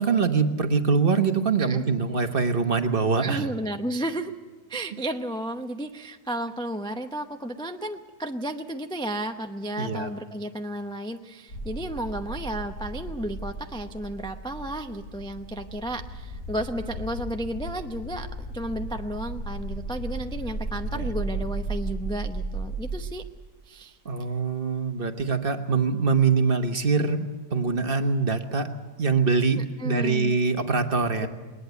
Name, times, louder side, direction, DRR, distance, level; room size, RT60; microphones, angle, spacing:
voice 1, 0.0-3.4 9.8-10.1 20.9-21.0 24.0-28.7 29.0-31.3, right 4 dB, 35° right, 7 dB, 1.3 m, -24 dB
voice 2, 3.2-4.3 4.7-23.2 23.7-24.0 29.6-30.4 31.2-31.3, right 1 dB, 5° left, 6 dB, 0.3 m, -33 dB
sound 1, 11.5-23.1, right 2 dB, 50° left, 4.7 m, -35 dB
21.0 x 19.5 x 8.1 m, 1.3 s
omnidirectional pair, 1.7 m